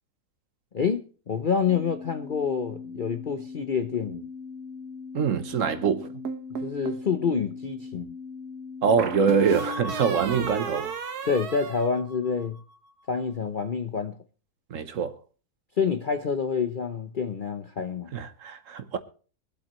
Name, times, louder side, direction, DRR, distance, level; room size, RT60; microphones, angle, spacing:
voice 1, 0.7-4.3 6.6-8.1 11.2-12.6 13.1-14.2 15.8-18.1, left 6 dB, 45° left, 0.6 m, -27 dB
sound 1, 1.7-9.6, left 5 dB, 75° left, 2.9 m, -40 dB
voice 2, 5.1-6.1 8.8-10.9 14.7-15.2 18.1-19.0, right 6 dB, 60° right, 1.2 m, -24 dB
sound 2, 6.3-7.1 9.0-12.6, right 4 dB, 75° right, 1.6 m, -34 dB
24.0 x 8.1 x 3.1 m
omnidirectional pair, 1.7 m